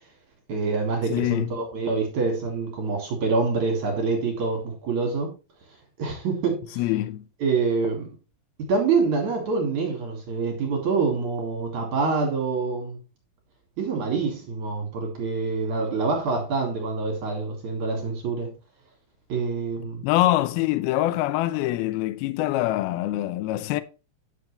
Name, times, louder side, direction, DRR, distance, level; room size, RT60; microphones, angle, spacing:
voice 1, 0.5-5.3 6.0-6.8 7.4-8.1 8.6-13.0 13.8-18.5 19.3-20.0, right 4 dB, 50° right, 2.7 m, -26 dB
voice 2, 1.1-1.6 6.8-7.2 20.0-23.8, left 15 dB, 85° left, 2.2 m, -24 dB
10.0 x 7.4 x 3.2 m
omnidirectional pair, 5.2 m